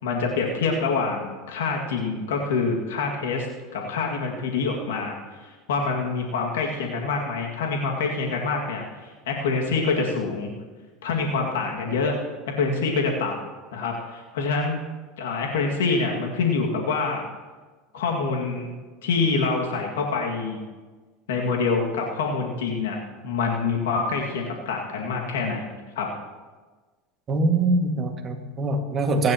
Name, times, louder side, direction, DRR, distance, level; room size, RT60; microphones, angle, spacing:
voice 1, 0.0-3.5 3.7-10.5 11.0-12.2 12.6-13.4 13.7-14.8 15.2-17.2 17.9-18.7 19.0-20.6 21.3-26.1, left 4 dB, 90° left, 0 dB, 2.1 m, -26 dB
voice 2, 27.3-29.3, right 2 dB, 30° right, 3 dB, 2.0 m, -23 dB
23.5 x 10.5 x 3.0 m, 1.3 s
supercardioid pair, 105°, 0 cm